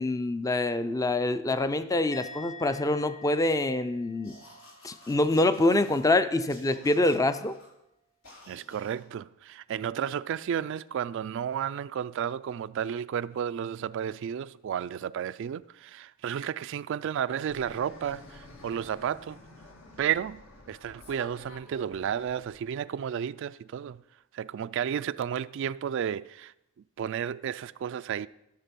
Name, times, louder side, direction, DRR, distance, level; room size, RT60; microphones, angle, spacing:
voice 1, 0.0-4.4 4.8-7.6, left 2 dB, 15° left, 0.4 m, -25 dB
Musical instrument, 2.1-5.5 5.8-6.2, left 2 dB, 50° left, 2.9 m, -47 dB
sound 1, 4.2-6.1 6.5-7.7 8.2-9.0, left 2 dB, 90° left, 3.9 m, -53 dB
voice 2, 8.5-19.4 20.0-20.4 20.7-24.0 24.3-26.5 27.0-28.3, right 8 dB, 65° right, 0.3 m, -32 dB
Fixed-wing aircraft airplane, 17.5-22.6, left 2 dB, 70° left, 1.7 m, -50 dB
15.5 x 6.6 x 5.3 m
head